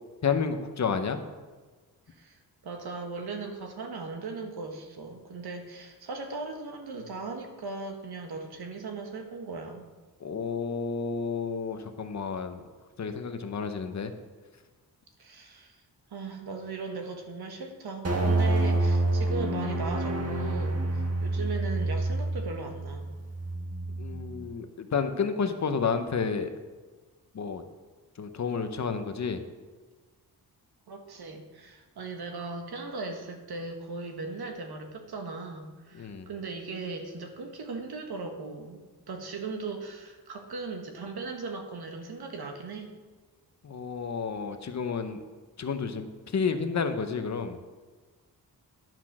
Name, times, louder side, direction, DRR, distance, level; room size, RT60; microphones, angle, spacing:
voice 1, 0.2-1.2 10.2-12.6 13.0-14.1 24.0-26.5 27.3-27.6 28.2-29.4 35.9-36.3 43.6-45.2 45.6-47.6, left 5 dB, 45° left, 8 dB, 0.8 m, -30 dB
voice 2, 2.1-9.9 15.2-15.8 16.1-23.1 30.9-38.8 39.1-42.9, right 4 dB, 75° right, 4 dB, 1.5 m, -38 dB
sound 1, 18.0-24.5, right 2 dB, 40° right, 1.5 m, -28 dB
11.0 x 6.0 x 6.2 m, 1.3 s
wide cardioid pair, 170°, 39 cm